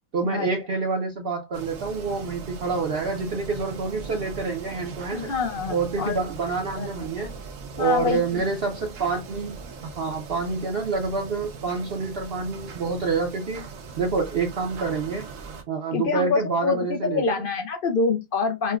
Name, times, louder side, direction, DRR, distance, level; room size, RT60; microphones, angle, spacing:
voice 1, 0.1-5.3 5.7-7.3 7.8-9.6 9.8-13.6 14.0-15.2 15.7-17.4, right 4 dB, 55° right, 0.7 m, -27 dB
sound 1, 1.5-15.6, right 5 dB, 80° right, 1.1 m, -40 dB
voice 2, 5.1-6.2 6.7-6.9 7.8-8.2 15.9-18.8, left 4 dB, 65° left, 0.5 m, -25 dB
5.4 x 2.1 x 2.3 m
omnidirectional pair, 1.4 m